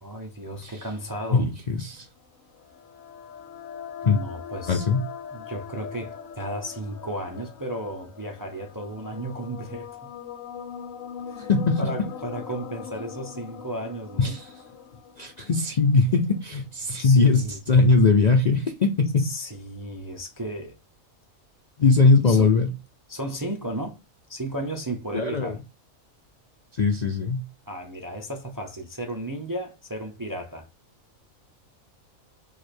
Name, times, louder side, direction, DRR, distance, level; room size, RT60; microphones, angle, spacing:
voice 1, 0.0-1.5 4.0-4.9 5.3-10.1 11.3-11.5 11.8-14.4 17.0-17.6 19.2-20.8 22.1-22.5 23.1-24.0 24.3-25.6 27.7-30.7, right 1 dB, 25° right, 0.5 m, -34 dB
voice 2, 1.3-2.0 4.1-4.2 4.7-5.0 11.5-11.8 14.2-14.5 15.2-19.3 21.8-22.7 25.1-25.5 26.8-27.4, left 4 dB, 50° left, 0.5 m, -20 dB
sound 1, 2.2-16.3, left 7 dB, 75° left, 1.0 m, -41 dB
4.9 x 2.5 x 4.3 m
omnidirectional pair, 1.4 m